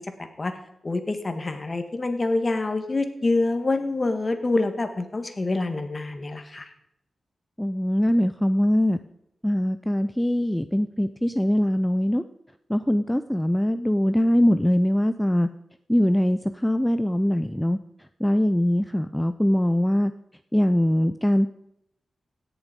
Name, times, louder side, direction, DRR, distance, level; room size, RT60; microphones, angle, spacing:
voice 1, 0.8-6.7, left 2 dB, 35° left, 7 dB, 1.7 m, -26 dB
voice 2, 7.6-9.0 9.4-12.2 12.7-15.5 15.9-17.8 18.2-20.1 20.5-21.5, equal, 5° left, 10 dB, 0.5 m, -22 dB
17.0 x 7.0 x 5.3 m, 0.79 s
cardioid pair, 60°, 0 cm